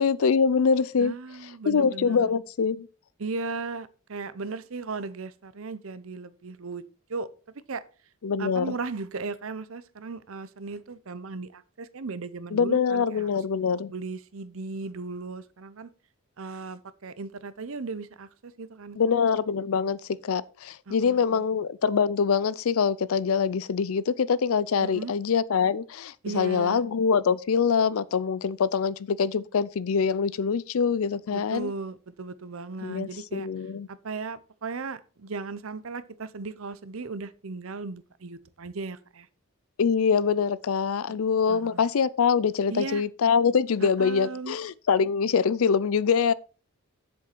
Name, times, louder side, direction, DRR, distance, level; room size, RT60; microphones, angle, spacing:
voice 1, 0.0-1.1 1.7-2.9 8.2-8.7 12.5-13.9 19.0-20.0 20.2-31.7 32.8-33.9 39.8-46.3, left 6 dB, 75° left, 0.4 m, -24 dB
voice 2, 1.0-2.3 3.2-6.8 7.1-7.3 7.5-7.8 8.4-13.4 13.9-15.9 16.4-19.1 20.9-21.5 24.8-25.1 26.2-26.8 31.3-33.5 33.9-39.3 41.1-41.2 41.5-41.8 42.7-43.0 43.8-44.6, right 4 dB, 65° right, 0.7 m, -36 dB
7.4 x 7.2 x 4.5 m
head